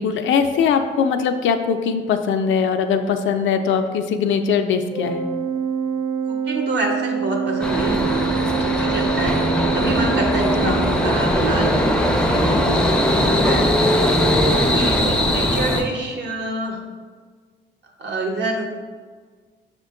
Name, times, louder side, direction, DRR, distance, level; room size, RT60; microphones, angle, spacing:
voice 1, 0.0-5.3 10.6-10.7, left 6 dB, 75° left, 7 dB, 0.4 m, -21 dB
Organ, 4.9-11.4, right 6 dB, 40° right, 0.8 m, -25 dB
voice 2, 6.3-9.4 9.7-12.7 13.2-13.7 14.4-16.8 18.0-18.6, right 2 dB, 60° right, 1 dB, 0.9 m, -27 dB
sound 1, 7.6-15.8, equal, 5° left, 0.4 m, -19 dB
5.9 x 2.2 x 3.6 m, 1.5 s
cardioid pair, 90°, 20 cm